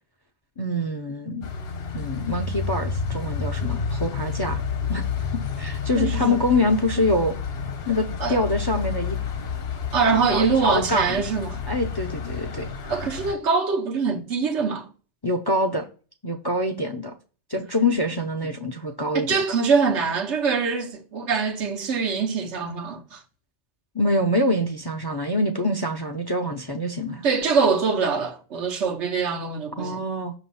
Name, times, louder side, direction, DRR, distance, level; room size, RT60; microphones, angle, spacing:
voice 1, 0.6-1.5 1.9-4.6 4.9-5.0 5.6-7.3 7.9-9.2 10.3-11.3 11.7-12.7 15.2-15.9 16.2-17.1 17.5-19.4 23.9-27.2 29.8-30.3, left 1 dB, 30° left, 0.5 m, -25 dB
sound 1, 1.4-13.3, left 6 dB, 65° left, 1.0 m, -30 dB
voice 2, 6.0-6.4 8.2-8.4 9.9-11.6 12.9-14.9 19.1-23.2 27.2-30.0, right 5 dB, 85° right, 1.3 m, -24 dB
6.1 x 3.0 x 5.5 m
omnidirectional pair, 1.2 m